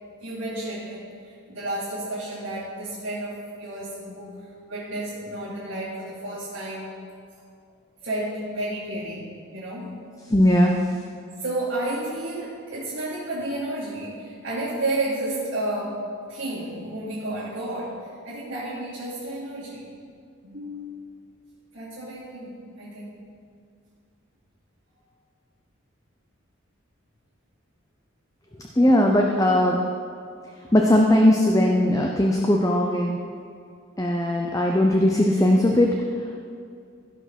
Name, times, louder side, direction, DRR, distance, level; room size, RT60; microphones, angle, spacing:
voice 1, 0.1-7.0 8.0-10.0 11.2-19.9 20.4-21.1 21.7-23.2 30.2-30.3 30.6-30.7 36.3-36.5, right 1 dB, 85° right, -11 dB, 2.9 m, -32 dB
voice 2, 10.3-10.8 28.8-29.8 30.7-33.2 34.0-36.0, left 1 dB, 15° left, 1 dB, 0.6 m, -19 dB
15.5 x 5.9 x 6.1 m, 2.3 s
head